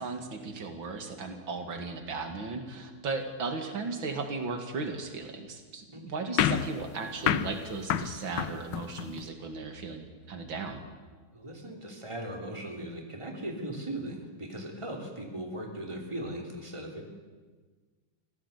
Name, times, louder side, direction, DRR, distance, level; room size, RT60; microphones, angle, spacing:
voice 1, 0.0-10.9, right 4 dB, 90° right, 6 dB, 2.9 m, -36 dB
sound 1, 6.4-9.3, left 10 dB, 70° left, 1.5 m, -30 dB
voice 2, 11.3-17.0, right 1 dB, 15° right, 2 dB, 3.2 m, -38 dB
25.0 x 16.5 x 8.3 m, 1.4 s
omnidirectional pair, 2.1 m